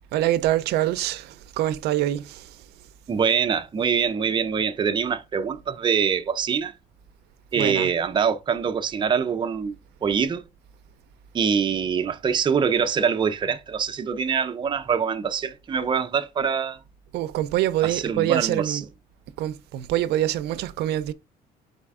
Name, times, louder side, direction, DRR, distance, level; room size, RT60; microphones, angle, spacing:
voice 1, 0.1-2.6 7.6-7.9 17.1-18.9 19.4-21.1, right 13 dB, 75° right, 0.5 m, -25 dB
voice 2, 3.1-6.7 7.5-9.8 10.0-10.4 11.3-16.8 17.8-18.8, right 6 dB, 30° right, 0.5 m, -24 dB
4.1 x 3.3 x 3.5 m
cardioid pair, 110°, 17 cm